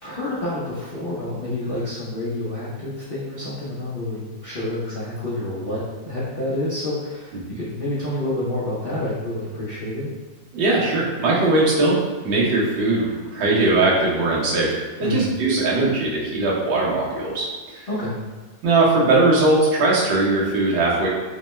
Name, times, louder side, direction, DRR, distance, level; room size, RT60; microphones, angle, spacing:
voice 1, 0.0-5.8 6.0-10.1 15.0-15.3 17.9-18.2, left 1 dB, 85° left, -8 dB, 0.5 m, -28 dB
voice 2, 10.5-12.0 12.2-17.9 18.6-21.1, right 2 dB, 85° right, -5 dB, 1.8 m, -20 dB
4.9 x 2.2 x 3.1 m, 1.4 s
omnidirectional pair, 2.0 m